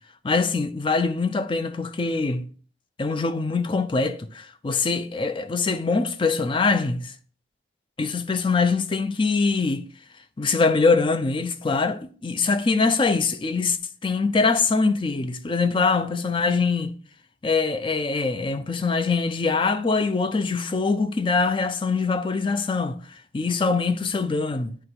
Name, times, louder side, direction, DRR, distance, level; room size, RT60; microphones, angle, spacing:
voice 1, 0.2-2.5 3.0-7.1 8.0-9.8 10.4-13.8 14.0-17.0 17.4-23.0 23.3-24.8, left 4 dB, 25° left, 0.4 m, -23 dB
8.0 x 2.9 x 4.5 m
head